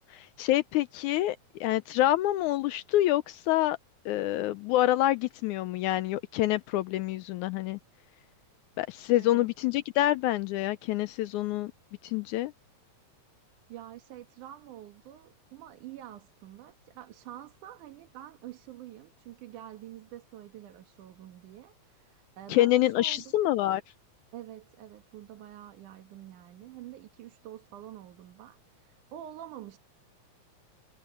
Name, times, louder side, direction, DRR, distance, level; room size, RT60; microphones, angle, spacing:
voice 1, 0.0-3.8 4.1-7.8 8.8-11.7 12.0-12.5 22.5-23.8, left 14 dB, 80° left, 2.0 m, -27 dB
voice 2, 9.2-9.5 13.7-23.4 24.3-29.8, right 12 dB, 80° right, 2.9 m, -47 dB
omnidirectional pair, 3.5 m